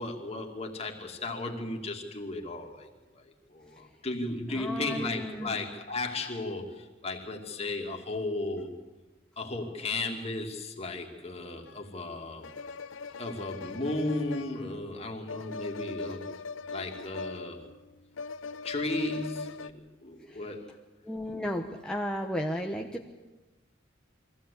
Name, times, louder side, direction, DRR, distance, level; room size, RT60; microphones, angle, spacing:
voice 1, 0.0-8.7 9.4-12.5 13.2-16.3 16.7-17.6 18.6-20.7, left 2 dB, 35° left, 2 dB, 2.6 m, -35 dB
voice 2, 4.5-5.6 20.3-20.4 21.0-23.1, equal, 5° left, 0 dB, 1.0 m, -34 dB
sound 1, 11.7-11.8 12.4-19.7, left 4 dB, 85° left, 0.6 m, -41 dB
23.0 x 15.5 x 8.5 m, 1.1 s
head